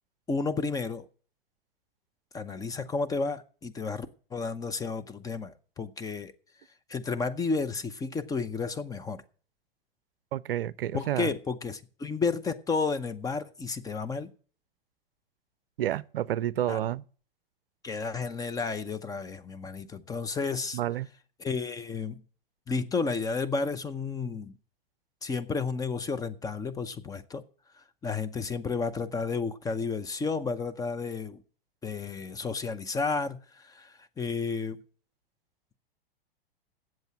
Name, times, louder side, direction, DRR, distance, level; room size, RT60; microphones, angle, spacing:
voice 1, 0.3-1.0 2.3-6.3 6.9-9.2 10.9-14.3 16.7-16.8 17.8-20.8 21.4-22.2 22.7-24.5 25.2-27.4 28.0-31.4 31.8-34.8, left 4 dB, 10° left, 0.7 m, -32 dB
voice 2, 10.3-11.3 15.8-17.0 20.7-21.1, right 12 dB, 70° right, 0.5 m, -30 dB
8.0 x 7.7 x 8.3 m
hypercardioid pair, 110°, 30 cm